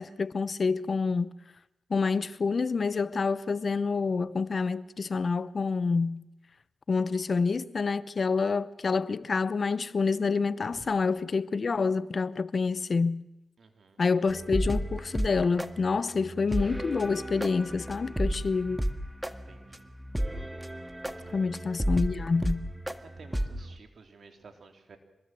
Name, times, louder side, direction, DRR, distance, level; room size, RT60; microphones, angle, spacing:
voice 1, 0.0-1.3 1.9-6.2 6.9-13.2 14.0-18.9 21.3-22.7, left 4 dB, 55° left, 0.9 m, -28 dB
voice 2, 13.6-14.0 19.3-19.9 21.2-21.4 23.2-25.0, right 4 dB, 65° right, 3.4 m, -53 dB
sound 1, 14.3-23.8, equal, 10° right, 1.8 m, -33 dB
26.0 x 20.5 x 7.7 m
cardioid pair, 50°, 0 cm